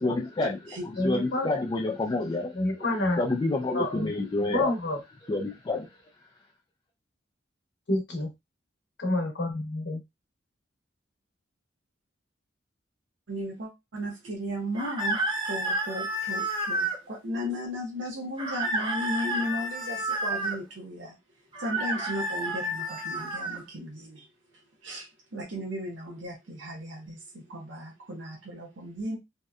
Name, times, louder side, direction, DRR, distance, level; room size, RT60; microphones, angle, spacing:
voice 1, 0.0-2.8 3.2-4.7 5.3-5.9, left 2 dB, 25° left, 0.3 m, -29 dB
voice 2, 1.0-1.5 2.5-3.2 3.7-4.1 4.4-5.0 7.9-8.3 9.0-10.0, left 1 dB, 65° left, 0.8 m, -28 dB
voice 3, 13.3-21.2 21.6-24.3 24.8-29.2, equal, 80° right, 0.6 m, -35 dB
sound 1, 14.7-17.0 18.4-20.6 21.5-23.6, right 1 dB, 25° right, 0.7 m, -30 dB
2.7 x 2.1 x 2.3 m
head